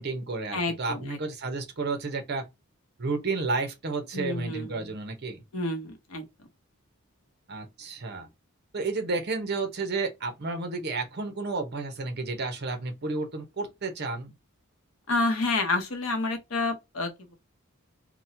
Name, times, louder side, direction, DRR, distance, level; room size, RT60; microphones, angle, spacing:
voice 1, 0.0-2.5 3.0-5.4 7.5-8.3 8.7-14.3, right 3 dB, 50° right, 0.7 m, -31 dB
voice 2, 0.5-1.2 4.1-4.9 5.5-6.3 15.1-17.3, left 2 dB, 70° left, 0.8 m, -29 dB
2.9 x 2.1 x 2.6 m
head